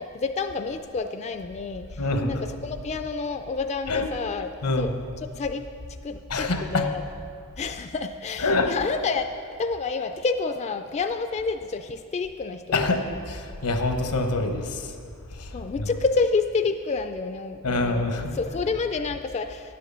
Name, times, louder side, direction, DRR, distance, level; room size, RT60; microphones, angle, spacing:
voice 1, 0.0-5.7 6.0-7.0 7.6-13.1 15.5-18.1 18.3-19.7, left 4 dB, 30° left, 8 dB, 0.3 m, -29 dB
voice 2, 2.0-2.4 3.9-4.1 4.6-5.0 6.3-6.9 8.4-8.9 12.7-14.9 15.4-15.5 15.8-15.9 17.6-18.3, left 2 dB, 85° left, 5 dB, 1.0 m, -26 dB
9.9 x 7.8 x 6.6 m, 2.2 s
head